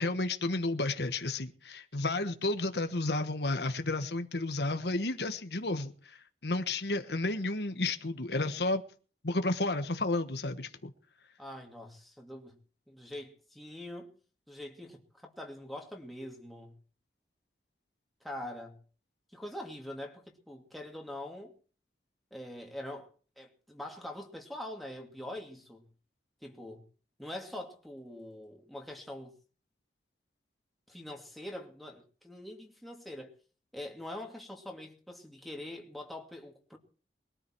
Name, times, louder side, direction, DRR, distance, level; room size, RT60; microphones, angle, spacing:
voice 1, 0.0-6.2 6.4-8.8 9.2-10.9, left 2 dB, 70° left, 1.3 m, -32 dB
voice 2, 11.4-12.6 12.9-14.1 14.5-16.8 18.2-18.8 19.3-21.5 22.3-23.1 23.4-25.9 26.4-26.8 27.2-29.4 30.9-33.3 33.7-36.8, left 1 dB, ahead, 2.6 m, -44 dB
21.5 x 13.0 x 4.7 m
head